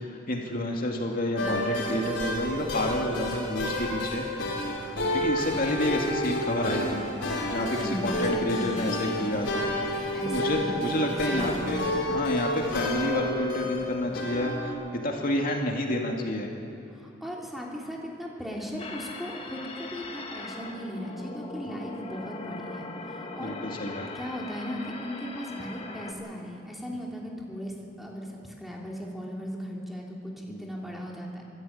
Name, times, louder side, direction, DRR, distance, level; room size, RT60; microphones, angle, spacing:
voice 1, 0.0-4.5 5.1-7.0 7.5-9.6 10.2-16.5 23.4-24.1 30.5-30.7, left 1 dB, 50° left, 0 dB, 2.5 m, -29 dB
sound 1, 1.4-14.7, left 1 dB, 70° left, 5.4 m, -30 dB
voice 2, 7.8-8.9 10.1-11.9 16.9-23.6 23.9-27.7 28.0-31.4, equal, ahead, -2 dB, 3.3 m, -37 dB
sound 2, 18.8-26.1, left 3 dB, 30° left, 1.9 m, -40 dB
25.5 x 13.5 x 8.8 m, 2.9 s
head